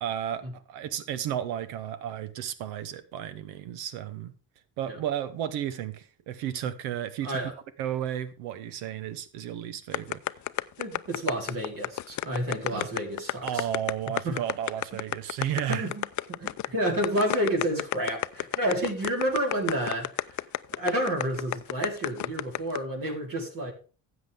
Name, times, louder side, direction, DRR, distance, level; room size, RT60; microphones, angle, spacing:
voice 1, 0.0-4.3 4.8-7.5 7.8-10.2 12.7-12.9 13.4-15.9, right 10 dB, 80° right, 1.0 m, -33 dB
sound 1, 9.9-22.8, left 14 dB, 50° left, 0.5 m, -30 dB
voice 2, 10.8-13.6 14.2-14.4 15.7-20.4 20.8-23.7, right 1 dB, 55° right, 4.1 m, -30 dB
13.0 x 8.2 x 3.6 m
hypercardioid pair, 55°, 38 cm